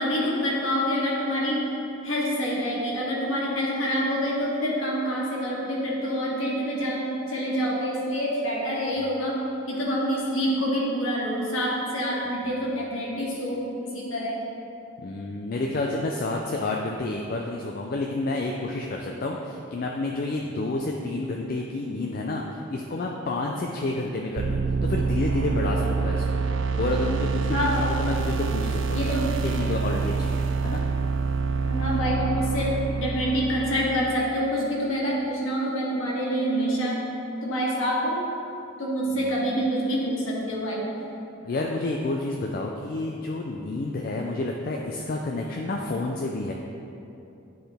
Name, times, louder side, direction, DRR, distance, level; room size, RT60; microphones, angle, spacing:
voice 1, 0.0-1.6 2.0-9.4 9.7-14.4 27.5-27.8 28.9-29.3 31.7-37.0 37.4-38.2 38.8-40.8, equal, 80° left, -5 dB, 1.5 m, -26 dB
voice 2, 15.0-26.4 26.8-30.8 39.1-39.5 41.4-46.5, left 2 dB, 45° left, 0 dB, 0.4 m, -30 dB
sound 1, 24.4-34.2, right 4 dB, 60° right, 0.3 m, -26 dB
10.0 x 3.8 x 3.4 m, 2.8 s
head